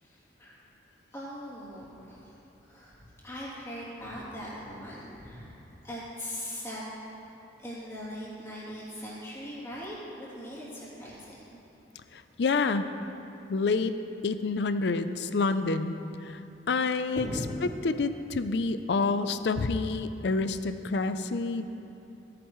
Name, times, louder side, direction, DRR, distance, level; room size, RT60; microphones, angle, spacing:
voice 1, 0.0-0.6 1.1-6.8 7.6-11.6 16.8-17.4, equal, 15° left, -8 dB, 2.9 m, -41 dB
voice 2, 12.1-12.9 13.5-13.9 14.2-15.9 16.2-16.4 16.7-17.3 17.8-21.7, left 3 dB, 65° left, 11 dB, 0.5 m, -28 dB
17.0 x 10.0 x 3.2 m, 2.9 s
head